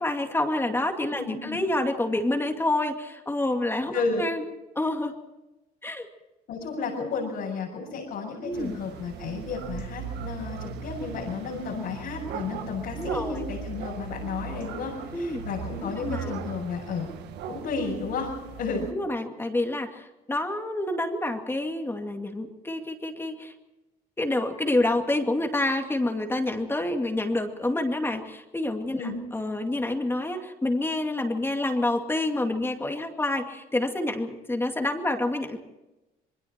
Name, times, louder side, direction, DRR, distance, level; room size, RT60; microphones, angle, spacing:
voice 1, 0.0-4.4 4.8-5.1 5.8-6.1 8.4-8.8 12.9-13.5 15.1-15.4 15.8-16.3 18.9-23.5 24.2-35.6, left 2 dB, 15° left, 4 dB, 2.3 m, -28 dB
voice 2, 1.2-1.6 3.9-4.2 6.5-17.1 17.5-18.3 18.6-18.9 29.0-29.2, left 4 dB, 75° left, -4 dB, 6.7 m, -32 dB
sound 1, 8.5-18.9, right 7 dB, 80° right, 1.7 m, -38 dB
27.0 x 21.5 x 4.5 m, 1.0 s
cardioid pair, 110°, 17 cm